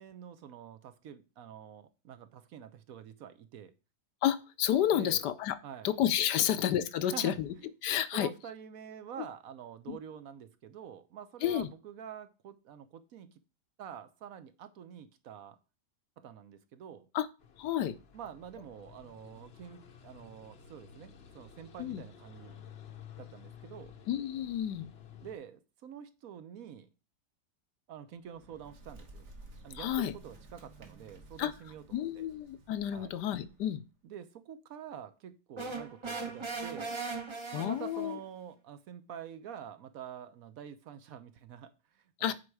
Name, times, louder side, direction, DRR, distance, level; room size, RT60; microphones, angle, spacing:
voice 1, 0.0-3.7 4.9-5.2 5.6-5.9 6.4-6.5 7.0-7.7 8.1-13.4 13.8-15.6 16.2-17.1 18.1-22.6 23.2-23.9 25.2-26.9 27.9-29.3 29.6-32.2 32.9-33.1 34.0-36.9 37.5-42.3, right 9 dB, 65° right, 1.0 m, -47 dB
voice 2, 4.2-5.6 5.8-7.5 7.8-8.3 9.9-10.0 11.4-11.7 17.1-17.3 17.6-17.9 21.8-22.0 24.1-24.9 29.7-30.1 31.4-31.5 31.9-33.8 37.5-38.2 42.2-42.3, left 11 dB, 75° left, 1.2 m, -30 dB
sound 1, 17.4-25.3, left 8 dB, 50° left, 0.8 m, -53 dB
Bird, 28.1-33.9, right 2 dB, 45° right, 1.5 m, -54 dB
sound 2, 35.6-38.2, right 4 dB, 25° right, 0.6 m, -39 dB
8.6 x 4.7 x 4.7 m
omnidirectional pair, 1.9 m